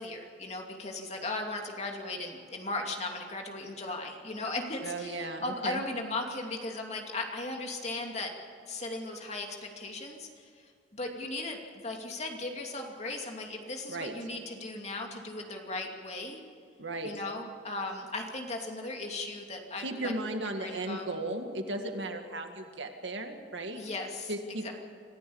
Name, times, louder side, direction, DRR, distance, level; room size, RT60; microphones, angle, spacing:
voice 1, 0.0-8.3 8.7-10.5 10.9-16.4 17.0-20.1 20.6-21.1 23.8-24.3 24.6-24.7, left 2 dB, 40° left, 2 dB, 2.6 m, -37 dB
voice 2, 4.8-5.8 13.9-14.1 16.8-17.1 19.8-23.8 24.3-24.7, right 2 dB, 85° right, 5 dB, 2.1 m, -36 dB
26.0 x 15.5 x 7.2 m, 2.3 s
head